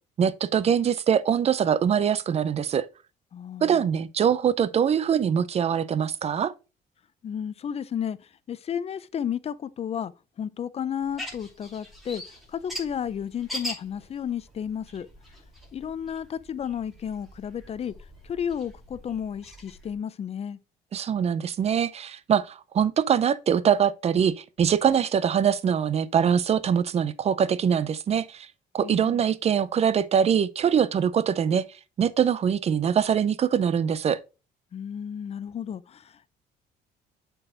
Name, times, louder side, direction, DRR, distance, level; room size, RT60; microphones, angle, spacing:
voice 1, 0.2-2.9 3.6-6.5 20.9-28.5 28.7-31.6 32.0-34.2, right 8 dB, 40° right, 0.5 m, -23 dB
voice 2, 3.3-3.9 7.2-8.2 8.5-10.1 10.4-12.2 12.5-15.1 15.7-17.9 18.2-20.6 28.8-29.2 34.7-36.3, left 8 dB, 35° left, 0.6 m, -32 dB
sound 1, 11.0-20.0, equal, ahead, 2.6 m, -42 dB
7.6 x 4.6 x 3.8 m
cardioid pair, 110°, 17 cm